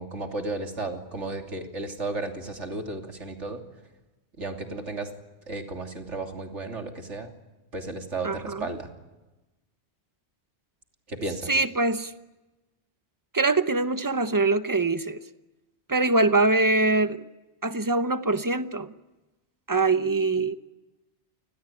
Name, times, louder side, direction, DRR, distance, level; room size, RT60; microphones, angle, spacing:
voice 1, 0.0-3.6 4.4-5.1 5.5-7.3 7.7-8.9 11.1-11.6, right 2 dB, 90° right, 4 dB, 3.4 m, -34 dB
voice 2, 8.2-8.7 11.5-12.1 13.3-15.2 15.9-17.2 17.6-18.9 19.7-20.5, right 3 dB, 20° right, 11 dB, 1.0 m, -23 dB
29.0 x 20.5 x 9.2 m, 1.1 s
omnidirectional pair, 1.2 m